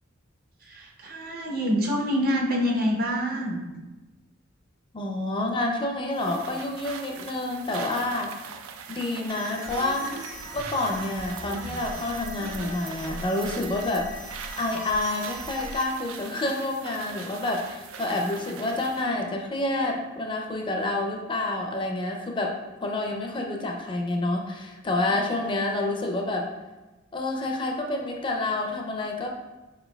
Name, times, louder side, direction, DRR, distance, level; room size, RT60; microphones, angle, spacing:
voice 1, 0.6-3.6, equal, 50° right, 0 dB, 0.7 m, -26 dB
voice 2, 4.9-8.3 8.9-10.1 10.5-14.1 14.6-26.5 27.1-29.3, left 2 dB, 25° left, 2 dB, 0.4 m, -28 dB
sound 1, 6.1-19.1, right 6 dB, 90° right, 0.4 m, -42 dB
sound 2, 9.3-15.8, right 1 dB, 70° right, 1.5 m, -39 dB
4.7 x 4.4 x 2.2 m, 1.1 s
head